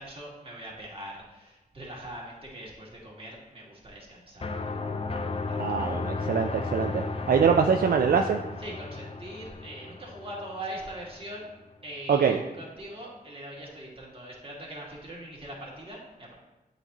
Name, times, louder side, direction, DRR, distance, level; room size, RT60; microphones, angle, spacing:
voice 1, 0.0-4.6 5.2-5.8 8.6-11.5 11.8-16.3, right 1 dB, 35° right, -4 dB, 2.0 m, -42 dB
sound 1, 4.4-11.1, left 3 dB, 35° left, 0.5 m, -34 dB
voice 2, 5.6-8.4 12.1-12.4, right 6 dB, 70° right, 3 dB, 0.4 m, -24 dB
8.2 x 4.0 x 2.9 m, 1.1 s
cardioid pair, 50°, 16 cm